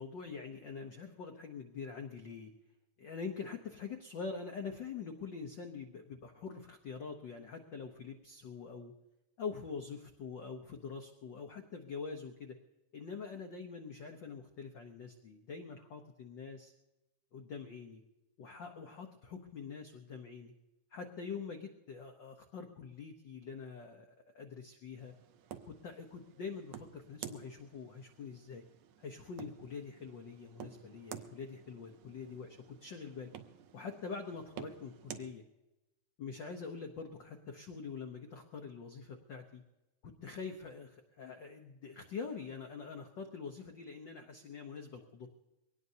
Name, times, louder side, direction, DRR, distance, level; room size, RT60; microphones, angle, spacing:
voice 1, 0.0-2.5 3.0-8.9 9.4-12.6 12.9-16.7 17.3-18.0 18.4-20.5 20.9-24.1 24.3-25.1 25.7-28.6 29.0-33.3 33.7-35.4 36.2-39.6 40.0-45.3, left 5 dB, 85° left, 4 dB, 1.0 m, -45 dB
sound 1, 25.0-35.3, right 9 dB, 75° right, 1.8 m, -51 dB
23.0 x 18.5 x 2.8 m, 1.0 s
omnidirectional pair, 3.4 m